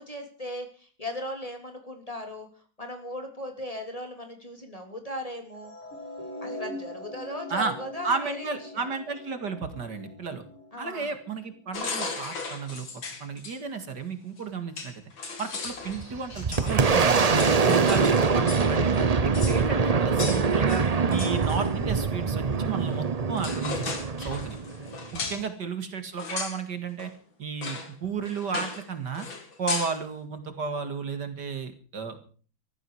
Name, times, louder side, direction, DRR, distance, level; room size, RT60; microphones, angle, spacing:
voice 1, 0.1-2.5 2.8-5.7 6.4-8.8 10.7-11.1 25.1-25.5, equal, 20° left, 4 dB, 3.3 m, -37 dB
sound 1, 5.5-11.8, left 1 dB, 50° left, 8.5 m, -42 dB
voice 2, 8.0-10.4 10.8-12.9 13.2-15.0 15.4-17.2 17.6-20.8 21.1-24.6 25.1-27.1 27.4-29.3 29.6-32.2, right 5 dB, 60° right, 8 dB, 2.6 m, -33 dB
sound 2, 11.7-13.6 14.4-14.5 14.8-18.7 18.9-19.0 19.3-19.6 20.2-21.7 22.9-23.1 23.3-25.5 26.2-26.6 27.0-27.1 27.6-27.9 28.2-28.9 29.1-30.0, left 4 dB, 85° left, 3.4 m, -36 dB
Boom, 15.9-25.3, right 5 dB, 45° right, 0.5 m, -24 dB
18.5 x 14.0 x 4.8 m, 0.40 s
omnidirectional pair, 2.1 m